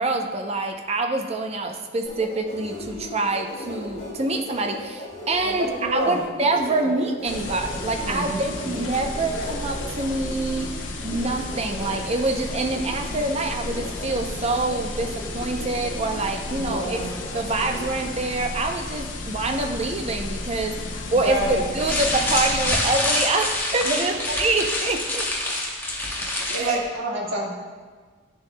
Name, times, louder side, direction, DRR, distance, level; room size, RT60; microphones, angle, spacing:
voice 1, 0.0-10.7 11.0-17.0 17.3-20.8 21.1-25.3 26.5-26.8, right 2 dB, 35° right, 4 dB, 0.6 m, -26 dB
sound 1, 2.0-18.1, left 1 dB, 30° left, 1.9 m, -38 dB
voice 2, 5.4-6.2 6.7-6.9 8.0-9.0 16.5-17.1 21.2-21.6 23.8-24.0 26.5-27.5, right 1 dB, 90° right, -3 dB, 1.7 m, -28 dB
sound 2, 7.2-22.7, left 2 dB, 85° left, 0.8 m, -33 dB
sound 3, 21.8-26.8, left 1 dB, 10° left, 0.9 m, -26 dB
10.0 x 7.1 x 2.2 m, 1.5 s
head